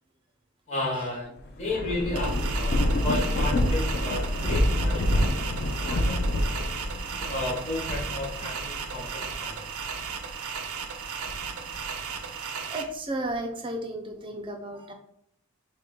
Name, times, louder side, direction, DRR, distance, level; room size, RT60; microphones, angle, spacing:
voice 1, 0.7-6.2 7.2-9.7, left 2 dB, 30° left, -5 dB, 1.1 m, -33 dB
Thunder / Rain, 1.4-10.3 10.8-12.2, left 1 dB, 45° left, 0.4 m, -28 dB
sound 1, 2.2-12.8, right 6 dB, 80° right, 0.5 m, -35 dB
voice 2, 9.3-9.7 10.0-10.1 11.2-14.9, right 1 dB, 25° right, 4 dB, 0.4 m, -36 dB
4.1 x 2.1 x 3.6 m, 0.75 s
head